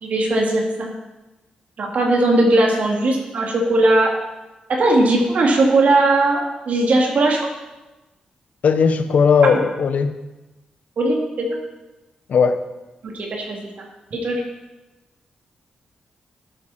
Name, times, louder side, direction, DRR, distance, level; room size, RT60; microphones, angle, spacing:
voice 1, 0.0-0.9 1.8-4.1 4.7-7.5 11.0-11.6 13.0-13.6 14.1-14.4, right 2 dB, 65° right, 0 dB, 2.5 m, -18 dB
voice 2, 8.6-10.1 12.3-12.6, left 6 dB, 70° left, 10 dB, 0.8 m, -17 dB
13.0 x 8.8 x 4.3 m, 1.1 s
cardioid pair, 70°, 3 cm